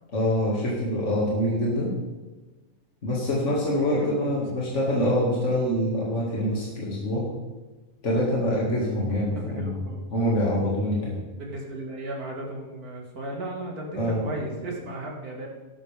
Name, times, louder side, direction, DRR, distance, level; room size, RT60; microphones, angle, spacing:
voice 1, 0.1-1.9 3.0-7.3 8.0-9.9 10.1-11.2 13.9-14.2, left 1 dB, 50° left, -5 dB, 2.4 m, -25 dB
voice 2, 3.9-4.4 9.3-10.1 11.4-15.5, right 1 dB, 90° right, -1 dB, 2.4 m, -35 dB
13.0 x 12.0 x 3.5 m, 1.2 s
omnidirectional pair, 1.6 m